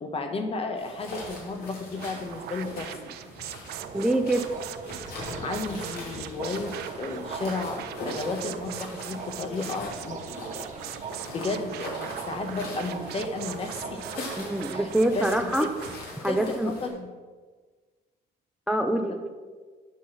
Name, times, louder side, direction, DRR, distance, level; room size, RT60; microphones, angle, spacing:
voice 1, 0.0-3.0 5.4-10.9 11.3-11.9 12.2-14.3 14.7-14.9 15.1-15.7 16.3-17.1, left 3 dB, 35° left, 6 dB, 1.2 m, -33 dB
sound 1, 0.8-16.9, left 1 dB, 65° left, 3.1 m, -41 dB
sound 2, 1.9-16.0, right 12 dB, 70° right, 0.4 m, -41 dB
sound 3, 3.7-15.4, right 5 dB, 45° right, 1.2 m, -41 dB
voice 2, 3.9-4.6 14.4-15.7 16.2-16.7 18.7-19.3, right 1 dB, 5° right, 5 dB, 0.5 m, -25 dB
9.4 x 4.1 x 7.2 m, 1.4 s
cardioid pair, 110°, 17 cm